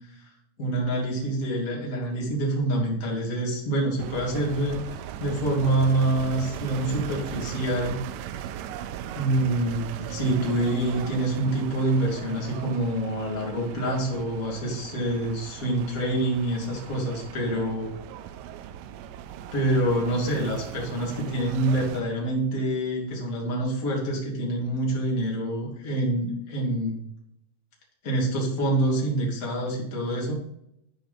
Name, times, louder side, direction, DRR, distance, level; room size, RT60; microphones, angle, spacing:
voice 1, 0.6-4.8 5.2-8.0 9.1-17.9 19.5-27.1 28.0-30.3, right 1 dB, 30° left, -3 dB, 1.6 m, -26 dB
sound 1, 4.0-22.0, right 10 dB, 85° right, 3.2 m, -38 dB
12.5 x 5.3 x 4.2 m, 0.76 s
omnidirectional pair, 5.8 m